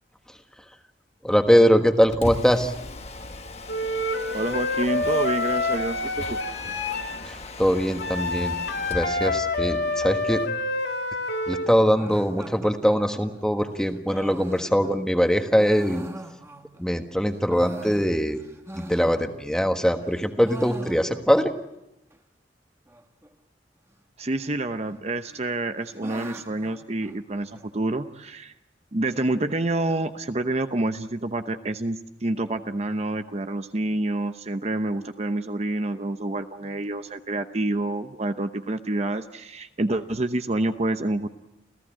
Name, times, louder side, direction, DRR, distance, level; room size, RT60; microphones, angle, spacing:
voice 1, 1.2-2.7 7.3-8.6 8.9-10.4 11.5-16.1 16.8-18.4 18.7-21.5, equal, 5° left, 6 dB, 1.4 m, -22 dB
Mechanisms, 1.9-9.1, left 2 dB, 35° left, 1.1 m, -38 dB
Wind instrument woodwind instrument, 3.7-7.2 8.0-11.7, left 2 dB, 75° left, 2.1 m, -27 dB
voice 2, 4.3-6.4 24.2-28.5 28.9-41.3, right 2 dB, 35° right, 8 dB, 0.8 m, -28 dB
sound 1, 11.9-16.9 17.3-19.7 20.0-21.5 21.8-21.9 22.1-22.2 22.9-23.3 24.3-24.9 25.3-27.7, right 1 dB, 15° right, 1.3 m, -42 dB
29.0 x 15.5 x 8.8 m, 0.88 s
head